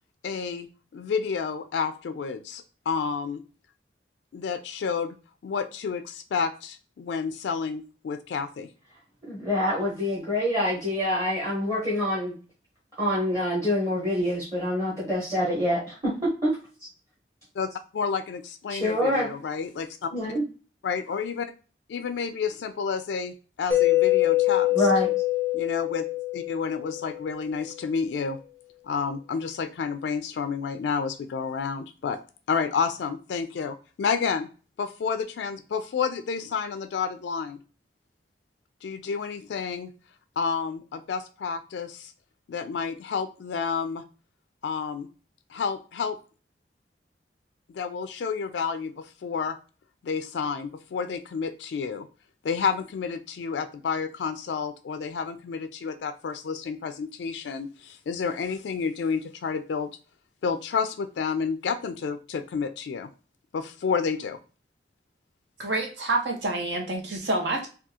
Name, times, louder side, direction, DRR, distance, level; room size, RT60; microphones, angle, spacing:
voice 1, 0.2-0.7 0.9-3.4 4.3-5.2 5.4-8.7 17.6-20.1 20.8-21.5 21.9-24.7 25.5-26.1 26.3-28.4 28.8-32.2 32.5-34.5 34.8-37.6 38.8-39.9 40.4-42.1 42.5-44.0 44.6-45.1 45.5-46.2 47.7-49.6 50.0-52.1 52.4-59.9 60.4-63.1 63.5-64.4, left 5 dB, 80° left, 0.3 m, -30 dB
voice 2, 9.3-12.4 13.0-16.6 18.7-19.3 20.1-20.4 24.7-25.1, left 1 dB, 20° right, 1.0 m, -26 dB
Mallet percussion, 23.7-27.5, left 17 dB, 10° left, 0.5 m, -24 dB
voice 3, 65.6-67.7, right 2 dB, 85° right, 1.0 m, -27 dB
3.5 x 2.3 x 2.7 m
head